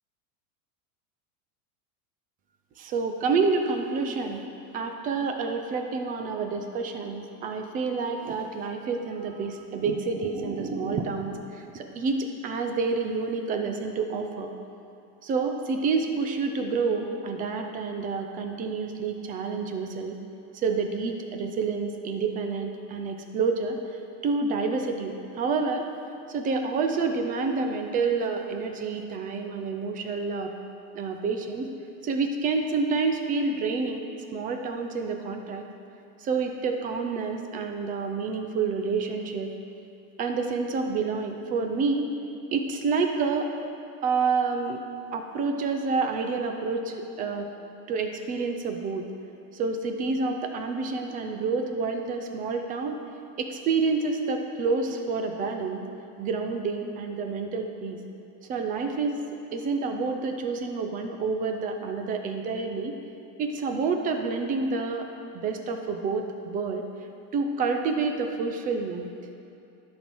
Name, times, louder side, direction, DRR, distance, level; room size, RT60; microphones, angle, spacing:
voice 1, 2.8-14.5 15.2-20.1 20.5-23.8 24.2-25.9 26.3-30.5 30.9-31.7 32.0-34.1 34.3-35.6 36.2-39.5 40.2-42.1 42.5-43.5 44.0-44.8 45.1-47.5 47.9-49.1 49.5-53.0 53.4-55.8 56.2-58.0 58.5-59.2 59.5-63.0 63.4-65.1 65.3-66.8 67.3-69.1, right 4 dB, 20° right, 5 dB, 0.4 m, -28 dB
11.5 x 4.4 x 6.1 m, 2.7 s
supercardioid pair, 145°, 45 cm